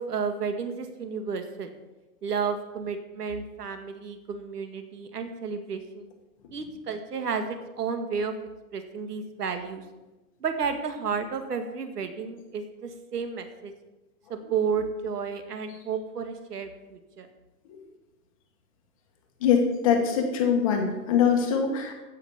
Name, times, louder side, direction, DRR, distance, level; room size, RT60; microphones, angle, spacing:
voice 1, 0.0-1.7 2.2-6.1 6.5-8.3 8.7-9.8 10.4-13.7 14.3-17.3, right 5 dB, 80° right, 7 dB, 2.1 m, -32 dB
voice 2, 19.4-21.9, left 7 dB, 20° left, 3 dB, 1.3 m, -23 dB
15.5 x 6.3 x 7.1 m, 1.1 s
hypercardioid pair, 175°, 46 cm